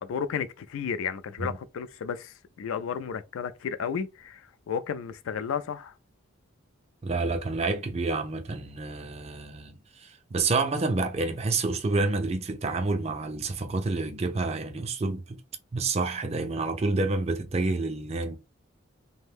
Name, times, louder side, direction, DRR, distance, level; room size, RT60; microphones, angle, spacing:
voice 1, 0.0-4.4 4.7-5.9, left 7 dB, 75° left, 0.3 m, -33 dB
voice 2, 7.0-15.4 15.7-18.4, right 3 dB, 30° right, 0.4 m, -28 dB
2.6 x 2.1 x 3.4 m
head